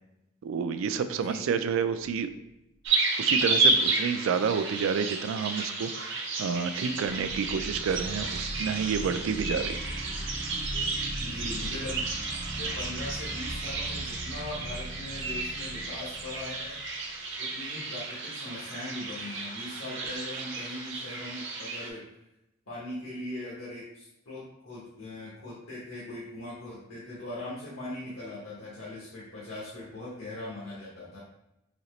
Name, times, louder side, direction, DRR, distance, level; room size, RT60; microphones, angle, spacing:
voice 1, 0.4-2.3 3.2-9.8, right 6 dB, 80° right, 10 dB, 0.3 m, -29 dB
voice 2, 1.1-1.4 11.2-12.0 12.5-16.9 17.4-22.0 22.7-31.2, left 1 dB, 80° left, -7 dB, 1.1 m, -40 dB
sound 1, 2.6-2.7 6.9-17.1, equal, 5° right, 0.4 m, -40 dB
sound 2, 2.8-21.9, right 3 dB, 65° right, 0.8 m, -32 dB
4.0 x 2.8 x 3.1 m, 0.89 s
head